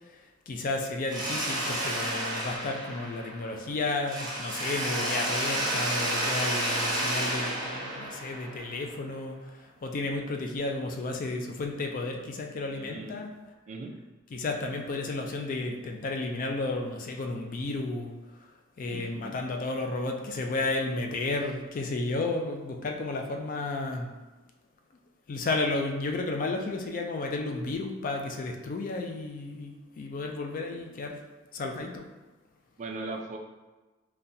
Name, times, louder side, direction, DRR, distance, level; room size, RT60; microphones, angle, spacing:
voice 1, 0.5-9.4 9.8-13.3 14.3-18.1 18.8-24.1 25.3-31.2 31.5-32.0, left 2 dB, 40° left, 3 dB, 0.3 m, -32 dB
Mechanisms, 1.1-3.7 4.0-8.9, right 1 dB, 20° right, 0.9 m, -31 dB
voice 2, 12.7-13.2 13.7-13.9 18.9-19.3 32.8-33.4, right 3 dB, 35° right, 3 dB, 0.3 m, -39 dB
3.9 x 2.3 x 2.6 m, 1.2 s
head